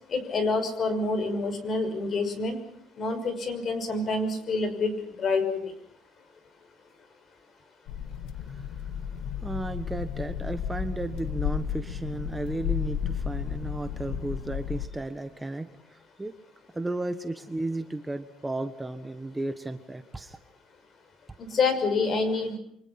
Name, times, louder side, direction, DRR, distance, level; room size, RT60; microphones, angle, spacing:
voice 1, 0.1-2.6 3.0-4.9 5.2-5.7 21.4-22.6, left 3 dB, 40° left, 9 dB, 6.0 m, -27 dB
sound 1, 7.9-14.9, left 8 dB, 75° left, 2.0 m, -33 dB
voice 2, 8.4-8.9 9.4-16.3 16.7-20.4, right 2 dB, 10° right, 8 dB, 1.4 m, -34 dB
29.0 x 24.5 x 5.9 m, 0.70 s
cardioid pair, 135°, 0 cm